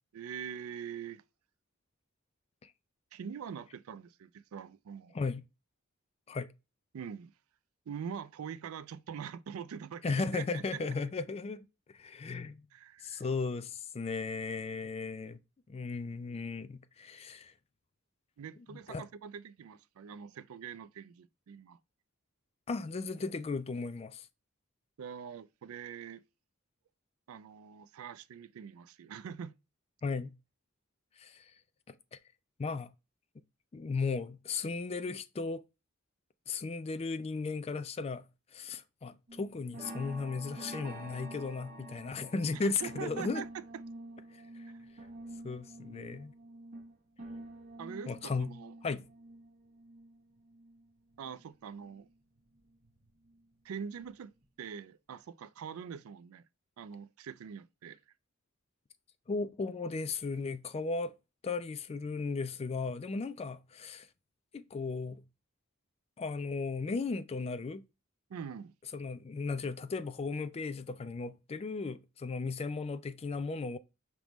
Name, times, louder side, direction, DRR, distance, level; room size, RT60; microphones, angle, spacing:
voice 1, 0.1-1.2 3.1-5.2 6.9-7.3 7.9-10.8 12.7-13.2 18.4-21.8 25.0-26.2 27.3-29.6 42.5-43.6 44.7-44.8 47.8-48.7 51.2-52.1 53.6-54.3 54.6-56.4 56.8-58.0 68.3-68.7, right 7 dB, 85° right, 0.4 m, -44 dB
voice 2, 10.0-11.7 11.9-12.6 13.0-15.4 15.7-17.5 18.9-19.0 22.7-24.3 30.0-30.3 31.2-31.5 32.1-32.2 32.6-32.9 33.7-35.6 36.5-38.3 38.5-43.4 45.4-46.3 48.1-48.5 48.8-49.0 59.3-61.1 61.4-64.1 64.5-65.2 66.2-67.8 68.9-73.8, left 4 dB, 30° left, 0.3 m, -36 dB
sound 1, 39.3-51.4 51.8-53.4 53.8-54.1 54.4-54.5, right 1 dB, 45° right, 1.3 m, -48 dB
5.1 x 3.5 x 2.9 m
head